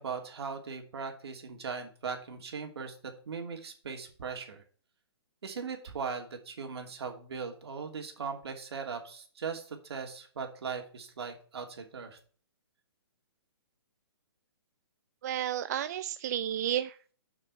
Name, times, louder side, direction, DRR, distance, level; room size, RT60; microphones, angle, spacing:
voice 1, 0.0-3.0 3.3-4.6 5.4-12.2, right 5 dB, 70° right, 4 dB, 2.8 m, -39 dB
voice 2, 15.2-17.1, right 11 dB, 40° right, 13 dB, 0.4 m, -32 dB
8.0 x 6.0 x 6.7 m, 0.44 s
hypercardioid pair, 155°, 14 cm